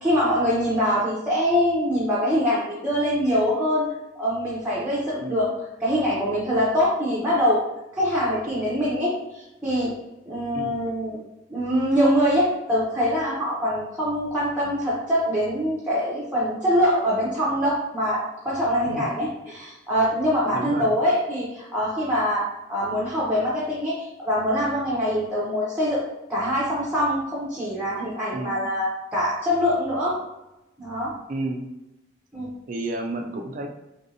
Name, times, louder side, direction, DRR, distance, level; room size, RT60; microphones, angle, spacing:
voice 1, 0.0-3.9 4.2-5.5 5.8-7.6 7.9-9.9 10.3-11.2 11.5-26.0 26.3-30.1 30.8-31.1 32.3-32.5, equal, 10° right, -8 dB, 0.7 m, -24 dB
voice 2, 5.2-5.5 10.5-10.8 18.9-19.1 20.5-20.9 28.3-28.6 31.3-31.7 32.7-33.7, right 2 dB, 45° right, 3 dB, 0.4 m, -31 dB
3.2 x 2.6 x 2.6 m, 0.94 s
head